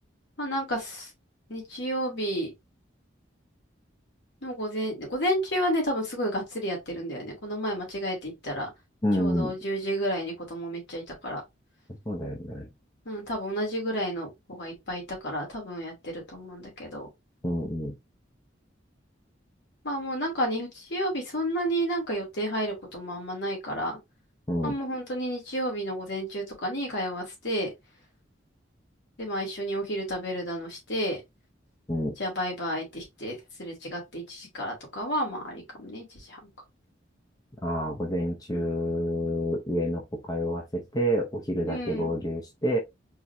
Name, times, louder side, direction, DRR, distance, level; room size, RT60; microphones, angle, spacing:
voice 1, 0.4-1.1 1.5-2.5 4.4-8.7 9.2-11.4 13.1-17.1 19.8-24.0 24.6-27.7 29.2-31.2 32.2-36.4 41.7-42.1, equal, 65° left, 2.5 m, -31 dB
voice 2, 9.0-9.5 11.9-12.7 17.4-18.0 24.5-24.8 31.9-32.1 37.6-42.8, equal, 20° left, 0.8 m, -28 dB
4.6 x 3.4 x 2.7 m
head